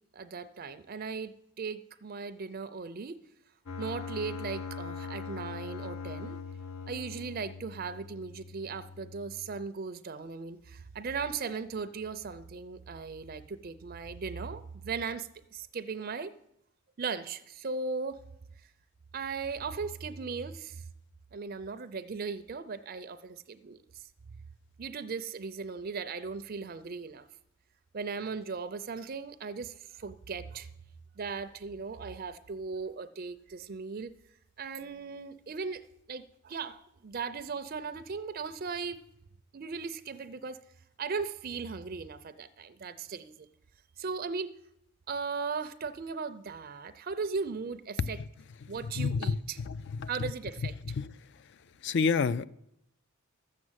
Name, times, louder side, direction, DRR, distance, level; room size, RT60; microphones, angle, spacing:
voice 1, 0.1-3.2 3.8-6.4 6.9-16.3 17.0-18.2 19.1-20.8 21.3-24.1 24.8-27.3 27.9-30.7 31.2-34.1 34.6-35.8 36.1-39.0 39.5-40.6 41.0-43.5 44.0-44.5 45.1-48.2 48.7-49.6 50.1-50.9, right 5 dB, 40° right, 11 dB, 0.4 m, -37 dB
sound 1, 3.7-9.7, left 5 dB, 80° left, 0.8 m, -41 dB
voice 2, 49.0-49.4 50.0-50.1 51.0-51.1 51.8-52.4, left 5 dB, 50° left, 17 dB, 0.4 m, -27 dB
13.0 x 7.4 x 7.9 m, 0.80 s
head